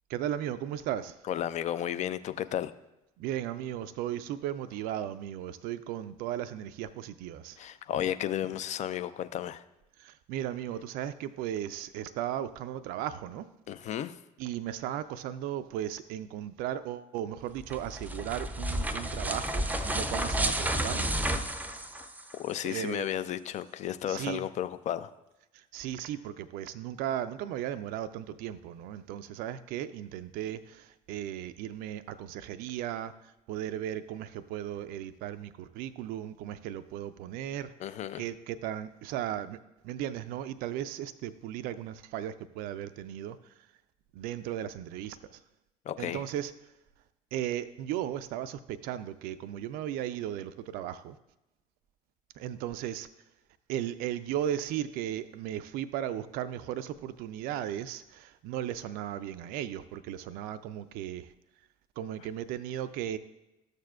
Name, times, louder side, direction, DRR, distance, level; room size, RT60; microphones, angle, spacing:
voice 1, 0.1-1.2 3.2-7.6 10.0-13.5 14.4-21.2 22.7-23.1 24.1-24.5 25.5-37.7 38.2-39.6 39.8-43.5 44.1-45.4 46.0-46.5 47.3-51.2 52.4-53.1 53.7-61.3 62.0-63.2, right 11 dB, 50° right, 13 dB, 0.4 m, -36 dB
voice 2, 1.3-2.7 7.6-9.6 13.7-14.2 22.4-25.1 37.8-38.2 45.9-46.2, left 11 dB, 40° left, 13 dB, 0.4 m, -33 dB
sound 1, 17.6-22.5, right 1 dB, 10° right, 0.6 m, -31 dB
13.0 x 6.6 x 2.3 m, 0.93 s
figure-of-eight pair, 55°, 19 cm